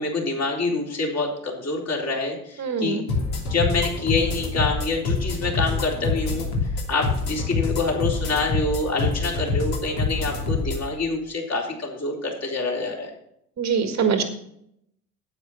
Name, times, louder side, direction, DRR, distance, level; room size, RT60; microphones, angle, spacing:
voice 1, 0.0-3.0 3.5-13.1, left 3 dB, 35° left, -1 dB, 3.9 m, -26 dB
voice 2, 2.6-3.0 13.6-14.2, right 6 dB, 35° right, 7 dB, 1.5 m, -23 dB
sound 1, 3.1-10.8, left 3 dB, 55° left, 2.9 m, -26 dB
9.7 x 8.7 x 5.7 m, 0.73 s
figure-of-eight pair, 60°, 44 cm